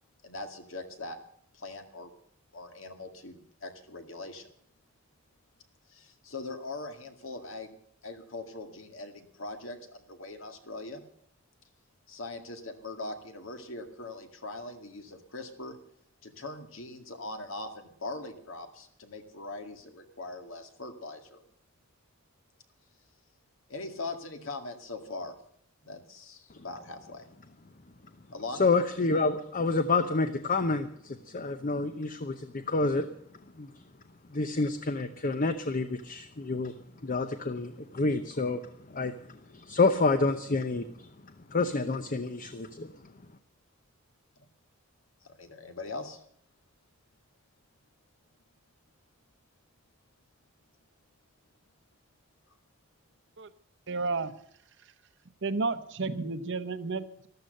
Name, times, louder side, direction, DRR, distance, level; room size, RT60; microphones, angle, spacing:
voice 1, 0.2-1.2 1.5-2.1 2.5-4.5 5.9-7.7 8.0-11.0 12.1-15.7 16.2-21.4 23.7-25.3 25.8-27.3 28.3-28.6 45.2-46.2, left 2 dB, 70° left, 6 dB, 2.1 m, -41 dB
voice 2, 28.6-33.1 33.6-33.7 34.3-36.7 37.0-38.6 38.9-41.1 41.5-42.9, left 3 dB, 40° left, 10 dB, 0.8 m, -28 dB
voice 3, 53.9-54.3 55.4-57.3, right 3 dB, 60° right, 11 dB, 1.0 m, -32 dB
13.5 x 12.5 x 6.6 m, 0.67 s
head